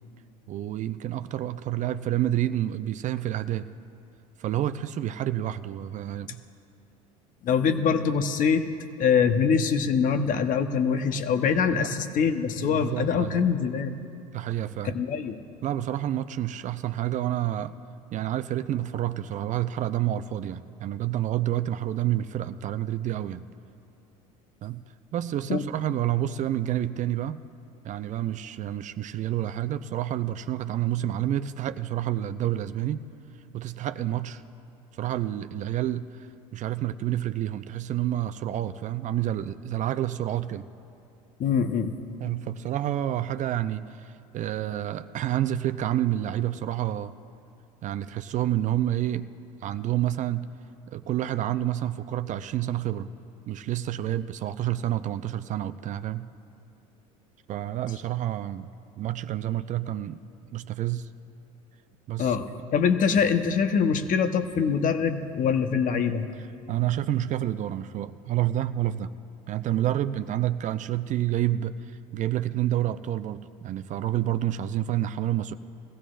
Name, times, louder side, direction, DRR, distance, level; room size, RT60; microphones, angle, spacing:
voice 1, 0.5-3.7 4.4-6.4 11.7-11.9 12.6-13.5 14.3-14.9 15.6-17.7 18.1-23.5 24.6-24.8 25.1-27.4 27.8-33.0 33.5-34.4 35.0-36.3 36.5-40.7 42.2-47.1 47.8-49.3 49.6-50.5 50.9-53.1 53.5-56.3 57.5-58.7 59.0-60.2 60.5-61.1 62.1-62.4 66.7-69.1 69.5-75.5, right 12 dB, 40° right, 12 dB, 0.5 m, -29 dB
voice 2, 7.4-8.7 9.0-14.0 14.8-15.4 25.5-25.6 41.4-41.9 62.2-66.3, left 6 dB, 45° left, 8 dB, 1.0 m, -24 dB
21.5 x 15.0 x 2.5 m, 2.6 s
hypercardioid pair, 80°, 19 cm